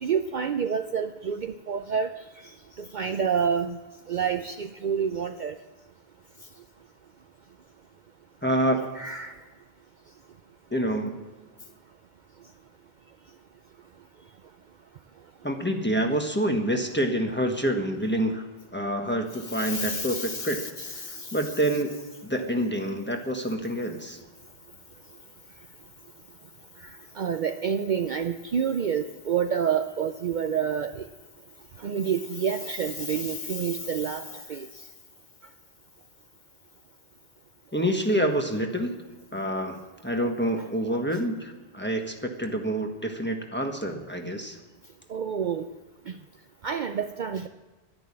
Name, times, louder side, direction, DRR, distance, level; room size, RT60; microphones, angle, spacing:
voice 1, 0.0-2.2 2.8-3.8 4.1-5.6 9.0-9.4 19.5-21.3 27.2-31.0 31.8-34.7 45.1-45.7 46.6-47.5, right 6 dB, 55° right, 8 dB, 0.6 m, -28 dB
voice 2, 8.4-8.9 10.7-11.2 15.4-18.4 18.7-20.6 20.9-21.9 22.2-24.2 37.7-38.9 39.3-44.6, right 1 dB, 10° left, 3 dB, 1.3 m, -27 dB
12.0 x 10.5 x 8.6 m, 1.3 s
omnidirectional pair, 1.1 m